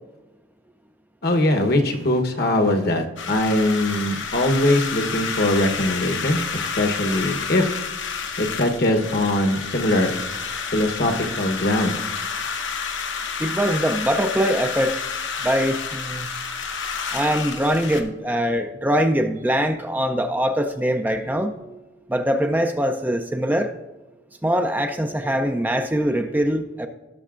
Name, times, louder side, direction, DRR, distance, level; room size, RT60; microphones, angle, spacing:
voice 1, 1.2-7.6 8.4-10.1 10.7-12.0, left 1 dB, 55° left, 4 dB, 1.0 m, -21 dB
sound 1, 3.2-18.0, left 5 dB, 80° left, 1.1 m, -30 dB
voice 2, 13.4-14.9 15.4-16.3 17.1-21.8 22.1-23.7 24.4-26.9, equal, 10° right, 6 dB, 0.4 m, -22 dB
17.0 x 6.5 x 2.5 m, 1.1 s
head